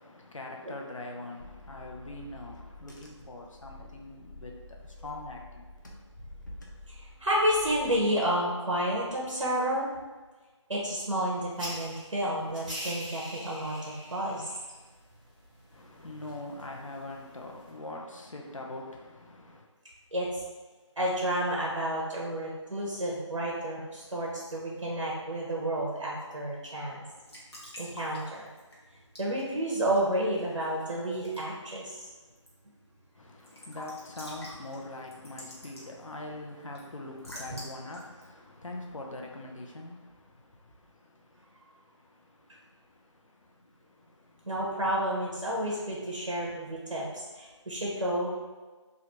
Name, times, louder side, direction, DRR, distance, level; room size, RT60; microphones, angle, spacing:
voice 1, 0.0-4.5 5.0-5.6 15.7-19.6 33.2-40.1 44.3-44.4, left 2 dB, 90° left, 0 dB, 0.6 m, -42 dB
Car / Engine, 1.4-8.0, left 2 dB, 40° left, 0.4 m, -48 dB
voice 2, 6.9-9.9 10.7-14.5 20.1-20.4 21.0-27.0 27.8-28.5 29.2-32.1 37.5-37.6 44.5-47.1 47.3-48.3, right 1 dB, 75° right, -4 dB, 0.8 m, -30 dB
sound 1, 11.5-17.7, equal, 15° right, 0.9 m, -44 dB
Raindrop / Drip / Trickle dribble, 27.0-39.5, equal, 55° left, 1.2 m, -50 dB
3.2 x 2.4 x 2.9 m, 1.3 s
figure-of-eight pair, 170°, 16 cm